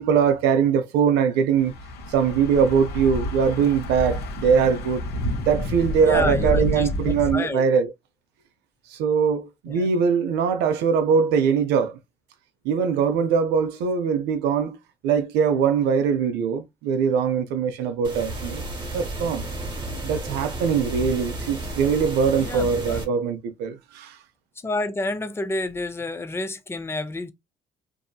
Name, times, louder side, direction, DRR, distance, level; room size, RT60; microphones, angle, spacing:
voice 1, 0.0-1.7 2.1-5.0 5.4-7.9 8.9-12.0 12.6-14.8 15.0-18.6 18.9-19.4 20.0-24.2, right 6 dB, 85° right, 0.5 m, -22 dB
Thunder / Bicycle, 1.6-7.3, left 1 dB, 70° left, 0.9 m, -29 dB
voice 2, 6.0-7.6 9.7-9.9 22.4-23.0 24.6-27.3, left 2 dB, 15° left, 0.4 m, -29 dB
sound 1, 18.0-23.0, right 1 dB, 30° right, 1.0 m, -32 dB
2.6 x 2.6 x 2.2 m
cardioid pair, 110°, 17 cm